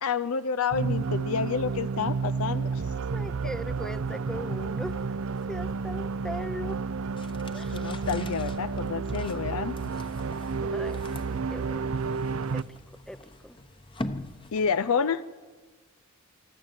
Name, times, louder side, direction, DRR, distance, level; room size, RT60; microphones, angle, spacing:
voice 1, 0.0-2.8 7.7-9.7 14.5-15.2, left 6 dB, 70° left, 12 dB, 0.5 m, -29 dB
sound 1, 0.7-12.6, right 4 dB, 70° right, 0.6 m, -31 dB
voice 2, 3.1-5.0 5.5-6.8 7.5-7.8 10.6-12.0 12.5-12.6 13.1-13.6, equal, 5° left, 14 dB, 0.6 m, -39 dB
sound 2, 7.2-14.9, left 1 dB, 25° left, 1.0 m, -43 dB
25.5 x 13.0 x 8.9 m, 1.5 s
head